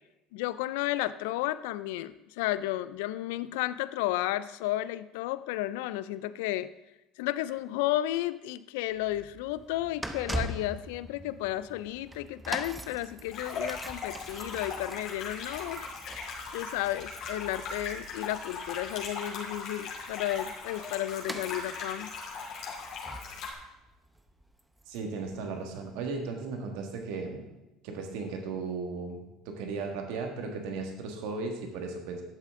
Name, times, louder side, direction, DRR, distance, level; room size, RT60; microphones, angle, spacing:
voice 1, 0.3-6.7 7.2-15.8 16.5-22.1, left 15 dB, 80° left, 15 dB, 0.3 m, -33 dB
sound 1, 8.9-25.9 26.6-26.7, right 1 dB, 10° right, 0.8 m, -43 dB
sound 2, 13.3-23.5, left 4 dB, 60° left, 2.6 m, -39 dB
voice 2, 24.9-27.5 27.8-32.2, right 4 dB, 75° right, 3 dB, 1.7 m, -36 dB
11.0 x 7.4 x 3.7 m, 0.98 s
supercardioid pair, 85°, 0 cm